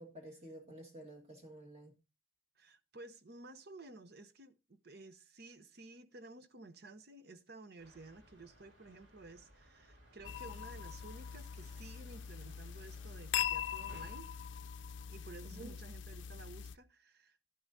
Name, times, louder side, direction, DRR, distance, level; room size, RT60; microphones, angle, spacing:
voice 1, 0.0-1.9 15.4-15.7, right 1 dB, 30° right, 1.7 m, -51 dB
voice 2, 2.6-14.3 15.1-17.5, right 2 dB, 55° right, 0.8 m, -54 dB
sound 1, 7.8-14.2, equal, 70° right, 3.0 m, -61 dB
sound 2, 10.2-16.8, left 9 dB, 70° left, 0.5 m, -42 dB
11.5 x 10.5 x 2.7 m
head